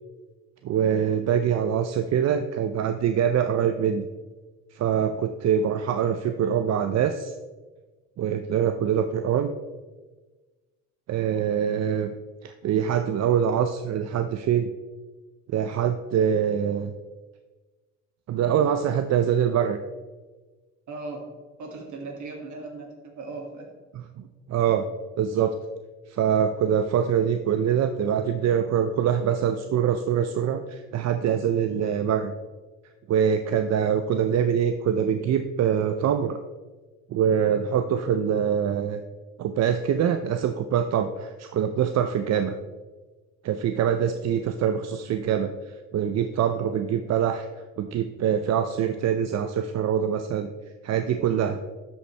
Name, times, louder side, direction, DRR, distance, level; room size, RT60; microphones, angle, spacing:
voice 1, 0.6-4.1 4.7-7.3 8.2-9.5 11.1-12.1 12.4-14.7 15.5-16.9 18.3-19.8 23.9-24.0 24.5-24.9 25.2-25.6 26.1-32.3 33.1-36.4 37.1-39.0 39.4-42.6 43.4-45.5 45.9-47.5 47.8-50.5 50.8-51.6, right 8 dB, 60° right, 8 dB, 0.5 m, -24 dB
voice 2, 20.9-21.3 21.6-23.7, right 3 dB, 75° right, 0 dB, 2.2 m, -37 dB
12.5 x 5.4 x 3.3 m, 1.3 s
cardioid pair, 90°, 30 cm